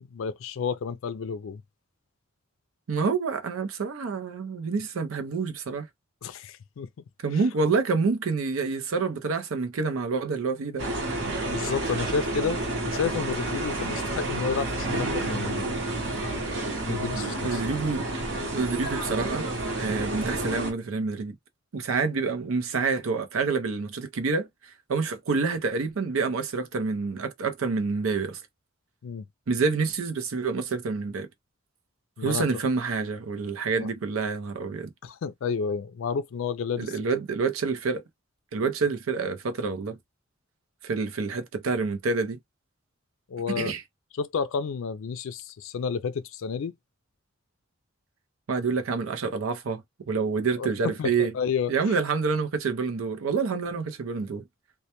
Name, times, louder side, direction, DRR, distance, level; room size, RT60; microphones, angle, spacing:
voice 1, 0.0-1.6 6.2-6.9 11.4-12.6 12.8-15.7 16.8-17.6 29.0-29.2 32.2-32.5 33.7-33.9 35.0-36.9 43.3-43.7 44.1-46.7 50.6-50.7 51.0-51.7, left 6 dB, 70° left, 0.4 m, -31 dB
voice 2, 2.9-5.9 7.2-10.8 16.9-17.0 17.4-18.0 18.5-19.5 19.8-21.4 21.7-28.4 29.5-31.3 32.2-34.9 36.8-38.0 38.5-40.0 40.8-42.4 43.5-43.8 48.5-51.3 51.7-54.4, right 4 dB, 85° right, 0.6 m, -27 dB
sound 1, 10.8-20.7, right 2 dB, 60° right, 0.8 m, -30 dB
2.2 x 2.2 x 2.8 m
head